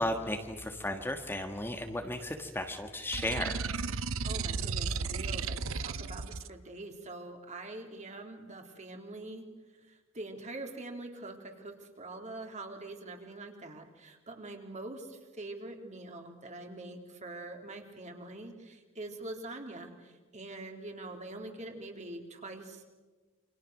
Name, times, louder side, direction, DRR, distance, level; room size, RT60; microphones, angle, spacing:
voice 1, 0.0-3.6, left 1 dB, 10° left, 4 dB, 1.5 m, -34 dB
sound 1, 3.1-6.5, right 5 dB, 80° right, 0.8 m, -34 dB
voice 2, 3.9-9.5 9.9-22.8, right 2 dB, 35° right, 3 dB, 3.6 m, -44 dB
29.0 x 26.0 x 6.5 m, 1.3 s
head